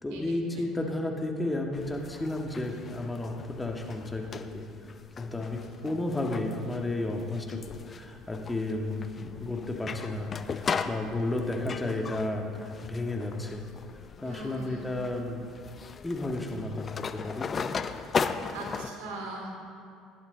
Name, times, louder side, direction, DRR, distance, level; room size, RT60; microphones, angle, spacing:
voice 1, 0.0-4.7 5.2-13.6 14.2-15.4 16.0-17.5, left 2 dB, 15° left, 1 dB, 1.7 m, -33 dB
sound 1, 1.7-18.9, left 5 dB, 35° left, 0.6 m, -38 dB
voice 2, 14.2-14.8 18.5-19.5, right 2 dB, 75° right, 0 dB, 2.8 m, -39 dB
17.0 x 11.0 x 3.9 m, 2.4 s
hypercardioid pair, 70°, 0 cm